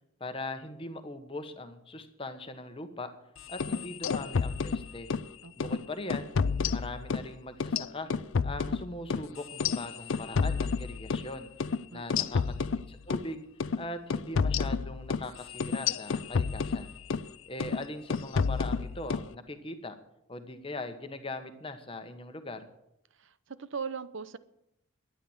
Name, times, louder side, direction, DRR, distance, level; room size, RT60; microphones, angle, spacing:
voice 1, 0.2-3.1 3.5-5.1 5.6-6.3 6.7-8.1 8.4-11.5 11.9-12.4 12.9-13.4 13.8-16.9 17.5-19.9 20.3-22.7, left 2 dB, 25° left, 8 dB, 1.2 m, -40 dB
sound 1, 3.5-5.3 5.6-5.8 6.1-7.3 7.6-11.3 11.6-11.8 12.1-13.3 13.6-13.8 14.1-17.3 17.6-17.8 18.1-19.3, left 5 dB, 65° left, 0.5 m, -30 dB
voice 2, 5.4-5.8 11.9-12.3 23.2-24.4, right 5 dB, 60° right, 15 dB, 0.7 m, -40 dB
12.5 x 10.0 x 7.3 m, 0.82 s
head